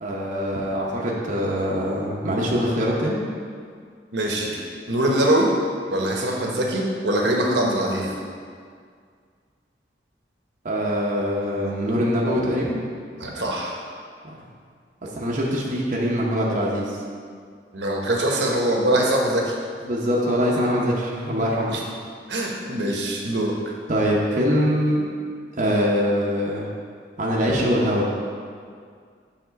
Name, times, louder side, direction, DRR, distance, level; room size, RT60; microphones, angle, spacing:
voice 1, 0.0-3.2 10.6-12.8 15.1-17.0 19.8-21.7 23.9-25.1 25.6-26.7 27.2-28.1, equal, 45° right, -4 dB, 0.8 m, -23 dB
voice 2, 4.1-4.6 4.9-5.5 5.9-8.1 13.2-13.8 17.7-19.5 21.7-21.8 22.3-23.5, right 1 dB, 80° right, -1 dB, 1.1 m, -23 dB
6.8 x 3.7 x 5.7 m, 2.1 s
head